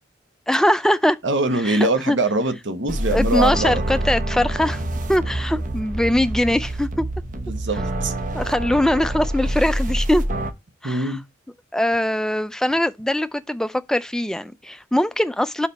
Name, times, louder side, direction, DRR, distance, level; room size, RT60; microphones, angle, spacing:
voice 1, 0.5-1.2 1.6-1.8 2.1-2.2 3.1-4.8 5.1-7.0 8.3-10.2 10.8-11.1 11.7-15.7, left 1 dB, 5° left, 0.3 m, -21 dB
voice 2, 1.2-4.1 7.3-8.1 10.8-11.2, right 2 dB, 65° right, 1.1 m, -23 dB
sound 1, 2.9-10.5, right 1 dB, 40° right, 0.9 m, -26 dB
5.0 x 4.9 x 5.3 m
head